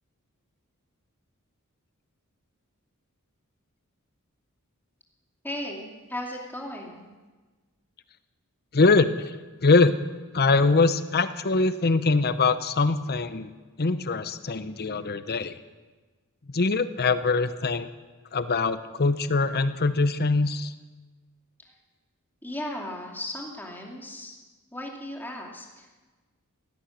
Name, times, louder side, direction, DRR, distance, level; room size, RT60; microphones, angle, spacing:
voice 1, 5.4-7.1 21.6-21.7 22.4-24.4 24.7-25.9, left 1 dB, 10° left, -1 dB, 2.6 m, -36 dB
voice 2, 8.7-9.3 9.6-9.9 10.3-13.5 13.8-15.5 16.5-17.9 18.3-20.7, left 3 dB, 45° left, 12 dB, 0.8 m, -23 dB
17.0 x 12.0 x 6.5 m, 1.3 s
head